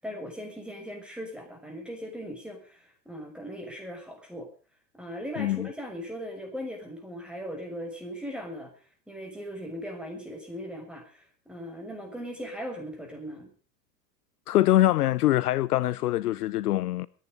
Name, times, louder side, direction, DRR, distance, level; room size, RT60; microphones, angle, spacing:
voice 1, 0.0-4.5 4.9-8.7 9.1-13.5, equal, ahead, 6.6 m, -39 dB
voice 2, 5.4-5.7 14.5-17.1, left 15 dB, 65° left, 0.7 m, -24 dB
22.5 x 10.0 x 5.3 m
figure-of-eight pair, 95°, 50 cm